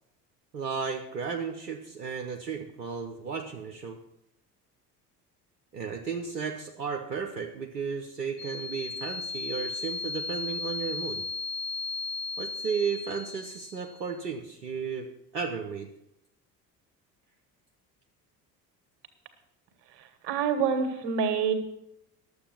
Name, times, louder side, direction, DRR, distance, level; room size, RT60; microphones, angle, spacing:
voice 1, 0.5-4.0 5.7-11.2 12.4-15.9, right 6 dB, 85° right, 4 dB, 0.9 m, -34 dB
sound 1, 8.4-14.0, left 4 dB, 45° left, 1.0 m, -36 dB
voice 2, 20.2-21.5, right 6 dB, 55° right, 8 dB, 2.0 m, -26 dB
11.5 x 7.9 x 7.1 m, 0.81 s
figure-of-eight pair, 60°, 48 cm